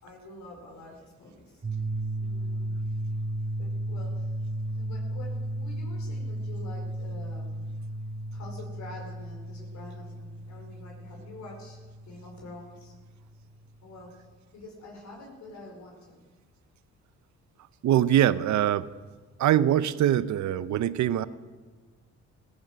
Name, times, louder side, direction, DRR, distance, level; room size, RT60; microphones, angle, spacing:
voice 1, 0.0-1.6 2.2-2.7 3.6-4.4 4.7-7.7 8.3-12.9 13.8-16.2, left 2 dB, 65° left, 0 dB, 4.8 m, -47 dB
sound 1, 1.6-13.5, right 1 dB, 25° right, 1.4 m, -34 dB
voice 2, 17.8-18.9 19.4-21.3, right 11 dB, 70° right, 16 dB, 0.7 m, -23 dB
16.5 x 13.5 x 6.2 m, 1.3 s
cardioid pair, 90°, 30 cm